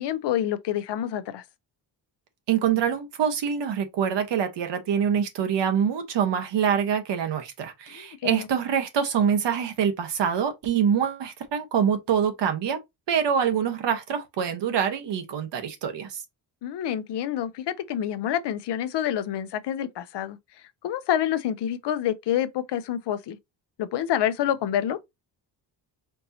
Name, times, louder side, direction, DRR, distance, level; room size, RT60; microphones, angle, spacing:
voice 1, 0.0-1.4 7.9-8.4 16.6-20.4 20.8-23.4 23.8-25.0, left 10 dB, 70° left, 0.7 m, -27 dB
voice 2, 2.5-12.8 13.1-16.2, right 8 dB, 75° right, 1.2 m, -25 dB
4.5 x 2.8 x 2.6 m
cardioid pair, 115°, 43 cm